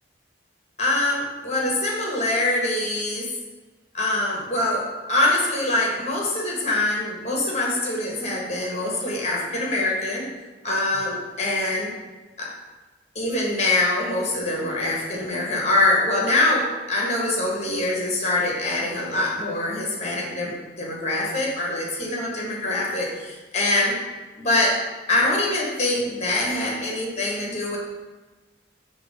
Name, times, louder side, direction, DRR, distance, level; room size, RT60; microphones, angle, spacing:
voice 1, 0.8-3.3 3.9-10.3 10.6-11.9 12.4-12.5 13.1-24.0 24.4-24.8 25.1-27.8, left 2 dB, 35° left, -2 dB, 1.2 m, -24 dB
6.1 x 3.5 x 5.0 m, 1.2 s
head